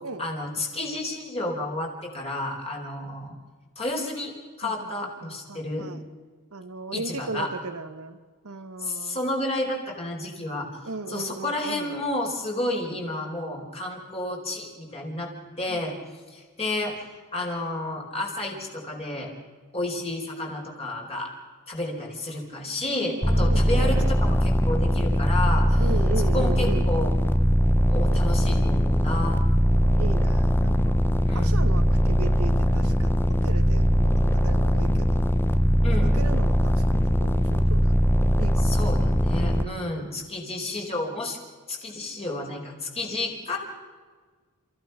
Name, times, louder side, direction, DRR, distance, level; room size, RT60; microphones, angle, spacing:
voice 1, 0.2-3.4 3.8-4.3 4.6-5.9 6.9-7.5 8.8-10.7 11.1-15.3 15.6-16.0 16.3-17.0 17.3-19.3 19.7-21.3 21.7-25.8 26.3-27.1 27.9-29.4 31.3-31.6 35.8-36.1 38.6-41.4 41.7-43.6, left 1 dB, 30° left, 0 dB, 4.5 m, -31 dB
voice 2, 4.6-6.1 6.5-8.2 8.4-9.2 10.8-12.0 15.7-15.9 22.8-24.1 25.8-26.9 29.7-31.0 31.3-35.2 35.9-38.1 38.4-38.8 39.3-39.9, right 3 dB, 85° right, 8 dB, 1.4 m, -37 dB
sound 1, 23.2-39.6, equal, 10° left, 0.8 m, -21 dB
29.5 x 15.5 x 5.8 m, 1.5 s
head